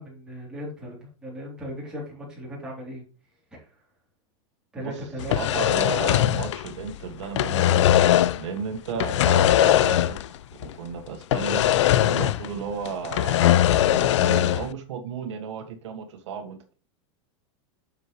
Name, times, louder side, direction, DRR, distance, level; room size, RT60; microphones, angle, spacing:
voice 1, 0.0-3.0 3.5-3.7 4.7-5.6 12.1-12.4, equal, 5° right, -4 dB, 3.5 m, -37 dB
sound 1, 5.2-7.0 7.2-8.5 9.0-10.4 10.6-10.7 11.3-12.6 12.9-14.7, left 12 dB, 85° left, 0.5 m, -20 dB
voice 2, 5.3-11.6 12.0-16.7, right 6 dB, 80° right, 6 dB, 1.6 m, -34 dB
7.9 x 6.9 x 3.2 m, 0.35 s
supercardioid pair, 175°, 15 cm